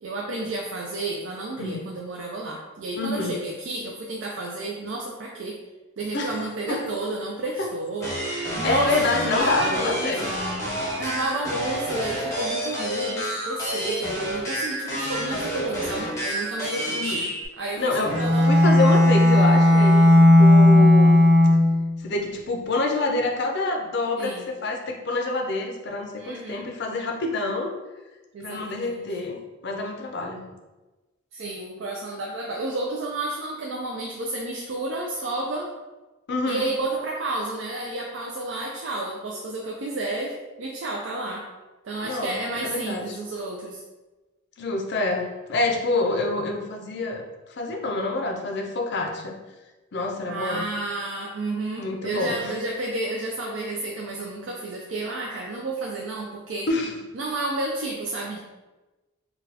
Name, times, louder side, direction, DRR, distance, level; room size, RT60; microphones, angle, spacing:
voice 1, 0.0-5.6 6.0-8.1 8.6-10.3 11.0-17.1 17.6-18.6 24.2-24.4 26.2-26.6 28.3-29.1 31.3-35.7 36.5-41.4 41.8-43.8 50.2-56.7 57.1-58.4, right 2 dB, 60° right, -2 dB, 0.4 m, -31 dB
voice 2, 3.0-3.3 6.1-6.4 6.7-6.8 7.6-7.7 8.3-10.2 16.9-17.2 17.8-18.1 18.4-21.2 22.0-27.7 28.4-30.4 36.3-36.7 42.0-42.3 42.6-43.2 44.6-47.2 47.6-49.4 49.9-50.7 51.8-52.5 56.7-57.0, left 2 dB, 55° left, 2 dB, 0.5 m, -27 dB
sound 1, 8.0-17.5, equal, 15° left, 0.7 m, -29 dB
Bowed string instrument, 18.0-21.9, left 1 dB, 35° right, 0.7 m, -15 dB
3.9 x 2.2 x 2.7 m, 1.1 s
head